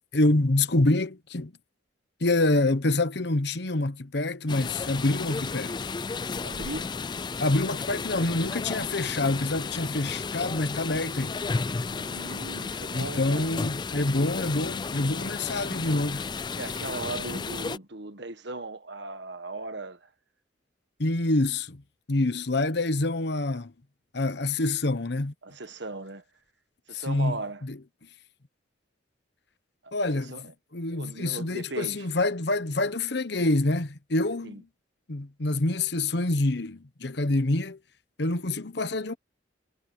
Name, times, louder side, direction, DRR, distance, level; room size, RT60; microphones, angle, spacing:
voice 1, 0.1-1.5 2.2-5.7 7.4-11.4 12.9-16.3 21.0-21.8 22.1-23.7 24.1-25.3 26.9-27.8 29.9-34.7 35.1-37.8 38.2-39.1, left 2 dB, 60° left, 1.1 m, -26 dB
sound 1, 4.5-17.8, left 4 dB, 25° left, 0.3 m, -33 dB
voice 2, 6.4-6.9 11.8-13.5 16.5-20.1 25.4-26.2 26.9-27.6 29.8-30.5 30.9-32.1 34.4-34.6, right 2 dB, 65° right, 1.5 m, -38 dB
head